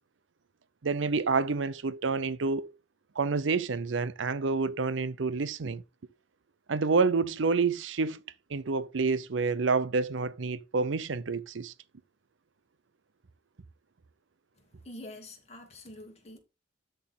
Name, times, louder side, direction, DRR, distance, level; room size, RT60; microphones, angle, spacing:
voice 1, 0.8-2.7 3.2-5.8 6.7-8.2 8.5-11.7, right 4 dB, 80° right, 0.6 m, -28 dB
voice 2, 14.6-16.4, left 1 dB, 35° left, 2.5 m, -46 dB
13.0 x 4.5 x 3.7 m
head